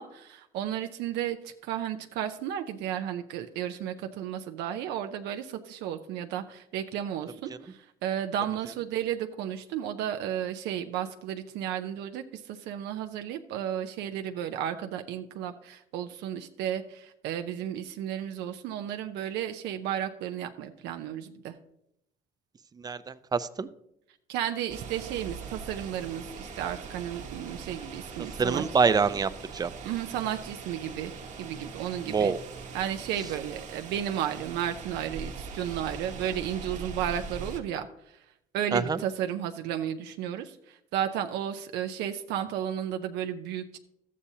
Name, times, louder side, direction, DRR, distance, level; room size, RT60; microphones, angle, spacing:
voice 1, 0.0-21.6 24.3-28.6 29.8-31.1 31.4-32.3 32.7-38.2 38.5-43.8, right 10 dB, 85° right, 6 dB, 0.6 m, -33 dB
voice 2, 22.8-23.7 28.4-29.7 32.1-32.4 38.7-39.0, right 5 dB, 25° right, 13 dB, 0.5 m, -26 dB
sound 1, 24.7-37.6, right 5 dB, 45° right, 1.1 m, -41 dB
13.0 x 8.4 x 2.7 m, 0.79 s
cardioid pair, 110°, 17 cm